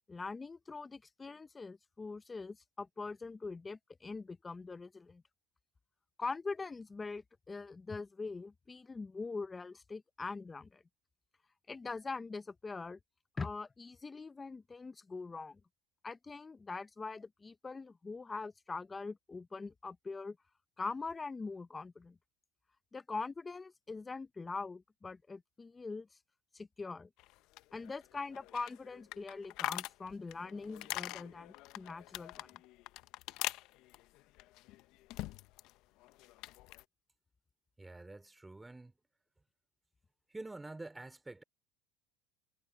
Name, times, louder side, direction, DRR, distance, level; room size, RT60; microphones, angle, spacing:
voice 1, 0.1-5.2 6.2-10.8 11.7-13.0 13.4-15.6 16.0-20.4 20.8-22.2 22.9-26.1 26.5-27.1 27.7-32.6, left 4 dB, 15° left, 0.8 m, -43 dB
sound 1, 27.2-35.7 36.0-36.8, left 18 dB, 60° left, 0.7 m, -44 dB
voice 2, 37.8-39.0 40.3-41.4, right 2 dB, 10° right, 2.9 m, -47 dB
supercardioid pair, 110°, 0 cm